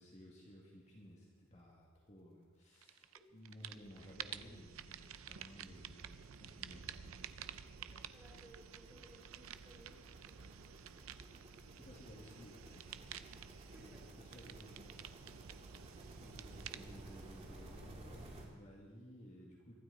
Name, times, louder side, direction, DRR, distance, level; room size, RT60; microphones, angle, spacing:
voice 1, 0.0-7.3 11.8-19.7, equal, 35° left, -3 dB, 2.1 m, -57 dB
sound 1, 2.8-3.2 3.5-18.5, right 8 dB, 80° right, 0.6 m, -51 dB
sound 2, 3.0-3.1 3.5-3.6 3.9-18.5, right 1 dB, 30° right, 2.5 m, -57 dB
voice 2, 7.8-10.0 10.4-11.0 11.3-11.4 13.7-14.1 14.3-14.4, equal, 5° right, -3 dB, 4.4 m, -63 dB
24.0 x 12.5 x 4.1 m, 1.5 s
head